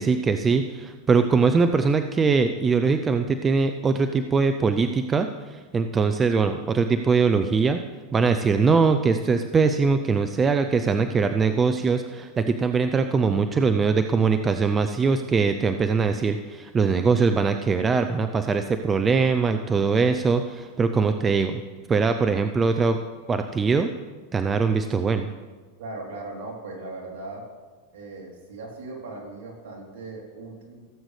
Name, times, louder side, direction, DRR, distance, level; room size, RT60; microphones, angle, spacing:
voice 1, 0.0-7.8 8.1-21.6 21.9-23.0 23.3-23.9 24.3-25.3, right 5 dB, 20° right, 8 dB, 0.5 m, -22 dB
voice 2, 25.8-27.4 27.9-30.9, right 2 dB, 70° right, -1 dB, 3.2 m, -38 dB
16.5 x 8.0 x 3.3 m, 1.4 s
hypercardioid pair, 110°, 0 cm